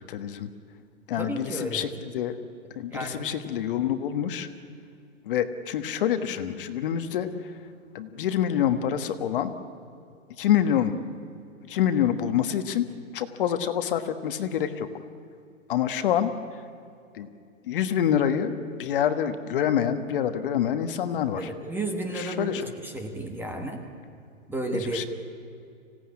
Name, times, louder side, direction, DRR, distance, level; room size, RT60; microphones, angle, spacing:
voice 1, 0.1-0.5 1.1-2.4 2.8-4.5 5.3-7.5 7.9-9.5 10.4-11.0 11.6-12.9 13.1-14.9 15.7-16.6 17.1-17.3 17.6-18.5 18.8-21.5 22.1-22.7 24.7-25.1, left 9 dB, 40° left, 9 dB, 1.4 m, -26 dB
voice 2, 1.1-1.8 2.9-3.2 21.4-22.5 22.8-23.8 24.5-25.0, right 1 dB, 5° right, 4 dB, 1.2 m, -32 dB
25.5 x 17.0 x 9.7 m, 2.5 s
hypercardioid pair, 160°, 39 cm